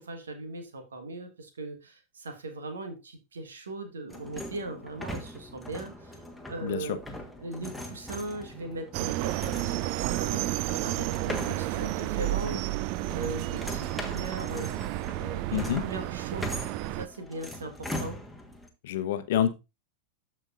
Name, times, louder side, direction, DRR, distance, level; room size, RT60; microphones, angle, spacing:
voice 1, 0.0-7.0 7.4-12.6 13.1-14.7 15.2-16.6 16.9-18.2, right 2 dB, 70° right, 6 dB, 1.6 m, -39 dB
sound 1, 4.1-18.7, equal, ahead, 1.4 m, -41 dB
sound 2, 8.9-17.1, right 16 dB, 45° right, 0.4 m, -31 dB
voice 2, 15.5-15.8 18.8-19.5, left 10 dB, 55° left, 10 dB, 0.8 m, -27 dB
13.5 x 5.0 x 2.5 m, 0.25 s
figure-of-eight pair, 90°, 0 cm